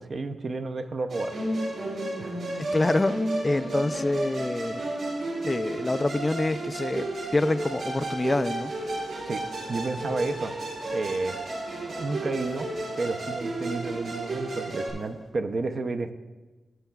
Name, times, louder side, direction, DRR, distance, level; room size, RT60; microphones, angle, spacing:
voice 1, 0.0-1.4 2.2-2.4 9.3-9.4 9.7-10.5 10.9-11.4 11.9-12.7 13.0-16.1, right 3 dB, 45° right, 7 dB, 0.5 m, -31 dB
Musical instrument, 1.1-14.9, right 2 dB, 85° right, 2.9 m, -32 dB
voice 2, 2.5-3.2 3.4-4.8 5.4-7.1 7.3-8.7, left 2 dB, 20° left, 12 dB, 0.3 m, -26 dB
sound 1, 8.8-15.3, left 3 dB, 85° left, 1.3 m, -51 dB
18.5 x 6.7 x 2.3 m, 1.2 s
wide cardioid pair, 135°, 0 cm